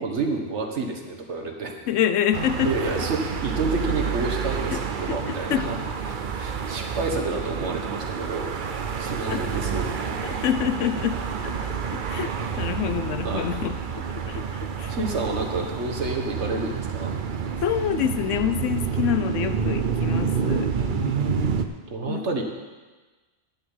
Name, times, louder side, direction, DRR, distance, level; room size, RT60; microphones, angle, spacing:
voice 1, 0.0-1.9 2.6-10.3 13.2-13.6 14.9-17.1 20.8-21.6 21.9-22.4, right 3 dB, 70° right, 3 dB, 1.7 m, -30 dB
voice 2, 1.9-2.7 4.7-4.8 5.1-5.2 5.5-5.6 9.3-9.5 10.2-14.9 17.6-20.7 22.1-22.3, left 10 dB, 85° left, 10 dB, 1.0 m, -27 dB
sound 1, 2.3-21.7, right 6 dB, 50° right, 0.8 m, -29 dB
10.0 x 7.6 x 7.9 m, 1.3 s
omnidirectional pair, 1.2 m